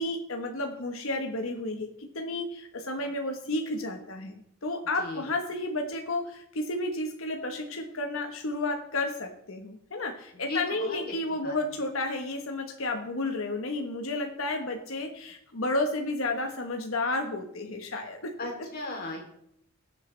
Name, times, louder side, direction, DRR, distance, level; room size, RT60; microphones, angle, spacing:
voice 1, 0.0-4.3 4.6-18.3, left 2 dB, 75° left, 4 dB, 1.2 m, -32 dB
voice 2, 5.0-5.3 10.3-11.1 11.4-11.8 18.4-19.2, left 2 dB, 45° left, 0 dB, 3.2 m, -37 dB
21.0 x 8.2 x 3.3 m, 0.73 s
head